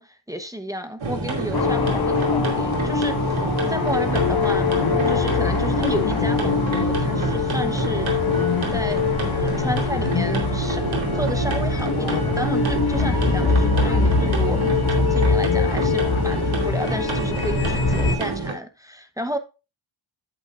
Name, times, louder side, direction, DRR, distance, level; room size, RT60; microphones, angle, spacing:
voice 1, 0.0-4.7 5.1-8.1 8.7-10.8 11.1-14.6 14.9-19.4, equal, 5° right, 1.0 m, -32 dB
sound 1, 1.0-18.5, right 3 dB, 75° right, 2.7 m, -28 dB
sound 2, 1.5-18.2, left 4 dB, 50° left, 1.6 m, -23 dB
sound 3, 4.1-16.4, left 5 dB, 70° left, 1.3 m, -29 dB
9.3 x 8.3 x 2.5 m
wide cardioid pair, 100°, 48 cm